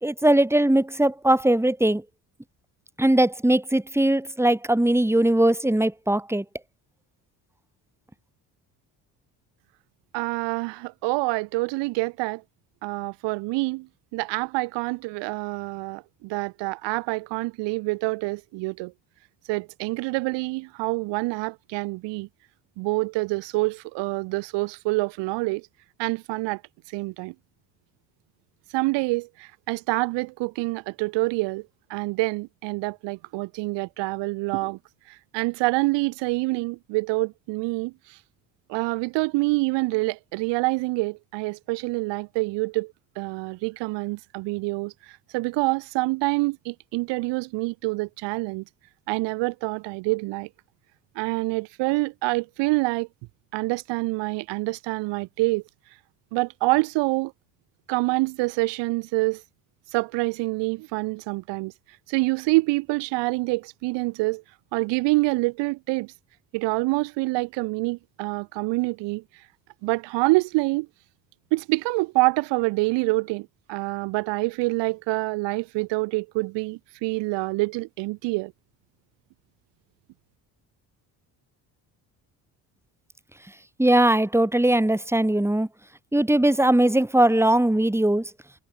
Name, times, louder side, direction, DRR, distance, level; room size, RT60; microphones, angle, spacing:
voice 1, 0.0-2.0 3.0-6.4 83.8-85.7 86.1-88.2, right 1 dB, 5° right, 4.6 m, -20 dB
voice 2, 10.1-12.4 12.8-13.9 14.1-18.9 19.5-22.3 22.8-25.6 26.0-26.6 26.9-27.3 28.7-31.6 31.9-34.8 35.3-37.9 38.7-44.9 45.3-48.6 49.1-50.5 51.2-53.1 53.5-55.6 56.3-57.3 57.9-59.4 59.9-61.7 62.1-64.4 64.7-66.1 66.5-69.2 69.8-70.9 71.5-78.5, right 24 dB, 90° right, 5.2 m, -26 dB
supercardioid pair, 80°, 41 cm